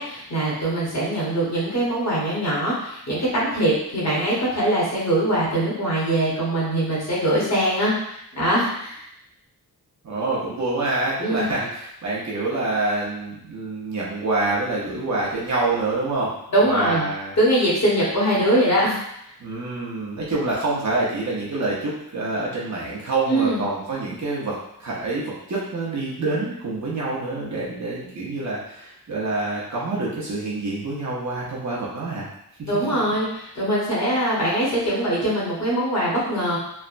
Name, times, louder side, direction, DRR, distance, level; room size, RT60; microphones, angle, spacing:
voice 1, 0.0-9.0 11.2-11.5 16.5-17.1 17.4-19.0 23.3-23.6 32.7-36.6, right 1 dB, 45° left, -7 dB, 1.0 m, -22 dB
voice 2, 10.0-16.3 16.6-17.3 19.4-32.3 32.6-32.7, right 2 dB, 45° right, -6 dB, 0.8 m, -26 dB
3.2 x 2.1 x 2.5 m, 0.76 s
wide cardioid pair, 165°, 38 cm